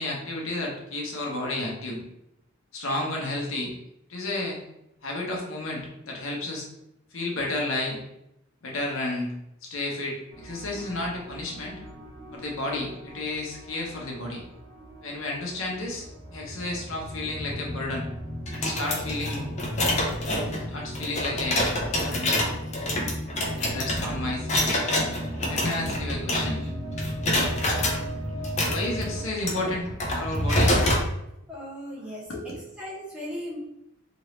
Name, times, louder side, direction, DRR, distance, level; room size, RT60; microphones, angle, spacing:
voice 1, 0.0-2.0 2.7-3.7 4.1-4.6 5.0-6.7 7.1-8.0 8.6-9.3 9.6-11.8 12.3-14.4 15.0-16.1 16.3-18.1 18.5-19.5 20.7-22.4 23.6-25.1 25.5-26.6 28.7-29.8 30.1-30.8 32.3-32.6, left 2 dB, 70° left, -1 dB, 0.8 m, -32 dB
sound 1, 10.3-29.3, equal, 65° right, 0.9 m, -37 dB
Pick a lock - actions, 18.5-26.7 27.0-28.0 28.4-31.1, left 1 dB, 30° left, 0.6 m, -27 dB
voice 2, 31.5-33.6, equal, 5° right, -7 dB, 0.8 m, -38 dB
2.9 x 2.7 x 3.1 m, 0.83 s
head